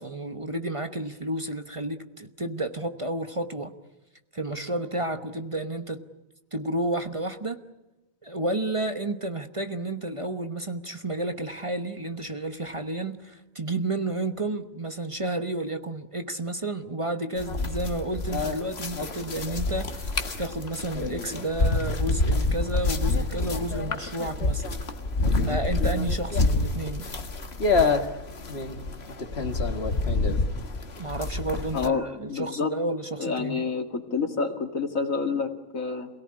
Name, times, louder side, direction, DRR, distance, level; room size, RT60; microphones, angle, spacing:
voice 1, 0.0-3.7 4.3-6.1 6.5-7.6 8.2-24.6 25.5-27.1 31.0-33.7, right 2 dB, 25° right, 1.1 m, -31 dB
sound 1, 17.4-31.9, left 3 dB, 50° left, 1.9 m, -27 dB
voice 2, 31.7-32.7 33.2-36.1, left 5 dB, 90° left, 2.6 m, -28 dB
27.5 x 17.5 x 9.8 m
omnidirectional pair, 1.4 m